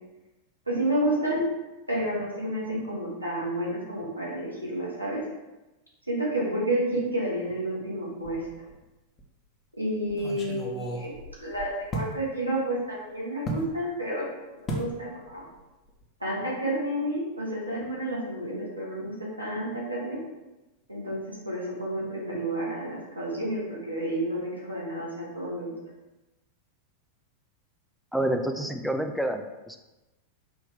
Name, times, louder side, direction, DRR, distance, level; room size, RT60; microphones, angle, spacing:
voice 1, 0.7-1.5 1.9-5.2 6.1-8.4 9.7-14.3 14.6-15.4 16.2-20.2 20.9-25.7, right 1 dB, 85° right, -5 dB, 1.2 m, -30 dB
sound 1, 8.2-8.8 9.2-9.3 10.1-12.1 13.4-13.7 14.7-14.9 15.3-15.6 15.9-16.0, right 1 dB, 25° left, 0.7 m, -34 dB
voice 2, 28.1-29.8, right 1 dB, ahead, 4 dB, 0.3 m, -28 dB
4.8 x 2.6 x 3.5 m, 1.1 s
figure-of-eight pair, 90°, 0 cm